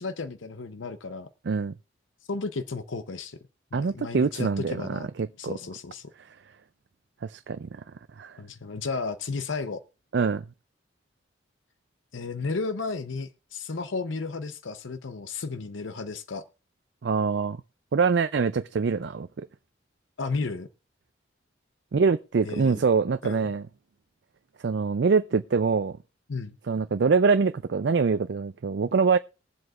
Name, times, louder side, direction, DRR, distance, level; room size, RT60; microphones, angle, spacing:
voice 1, 0.0-1.3 2.3-3.4 3.7-5.1 5.4-6.1 8.4-9.8 12.1-16.4 20.2-20.7 22.4-22.8 23.2-23.5 26.3-26.6, left 4 dB, 75° left, 0.7 m, -33 dB
voice 2, 3.7-5.6 7.2-7.7 8.2-8.4 10.1-10.4 17.0-17.6 17.9-19.5 21.9-23.6 24.6-26.0 26.7-29.2, right 5 dB, 60° right, 0.4 m, -24 dB
21.0 x 7.8 x 2.4 m
head